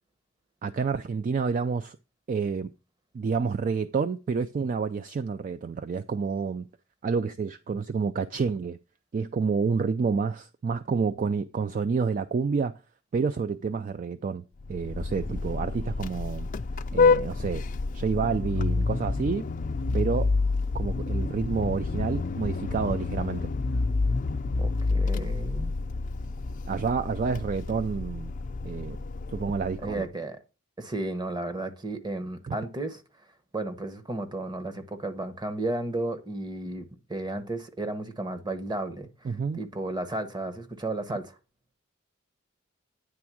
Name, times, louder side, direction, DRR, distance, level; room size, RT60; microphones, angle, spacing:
voice 1, 0.6-2.0 2.3-2.7 3.1-6.7 7.0-8.8 9.1-12.7 13.1-14.4 14.7-16.5 16.9-17.6 17.9-19.5 19.9-20.3 20.7-23.5 26.7-28.3 28.6-29.0 29.3-30.1 32.5-32.6 39.2-39.6, right 5 dB, 40° right, 0.3 m, -29 dB
Vehicle horn car horn honking, 14.6-30.0, left 3 dB, 40° left, 0.4 m, -28 dB
voice 2, 24.6-25.8 29.8-30.4 30.8-33.0 33.5-41.3, right 2 dB, 20° right, 0.9 m, -33 dB
9.6 x 3.5 x 6.1 m
head